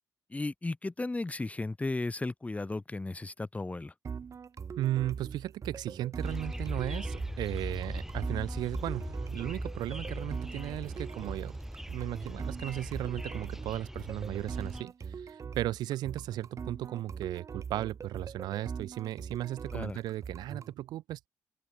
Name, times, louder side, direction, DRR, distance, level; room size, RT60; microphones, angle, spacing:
voice 1, 0.3-3.9 19.7-20.0, left 2 dB, 20° left, 1.0 m, -35 dB
sound 1, 4.0-20.7, right 6 dB, 45° right, 0.9 m, -42 dB
voice 2, 4.8-11.6 11.9-21.3, right 14 dB, 75° right, 1.3 m, -36 dB
sound 2, 6.2-14.8, right 1 dB, 5° right, 2.1 m, -39 dB
open air
supercardioid pair, 55°, 7 cm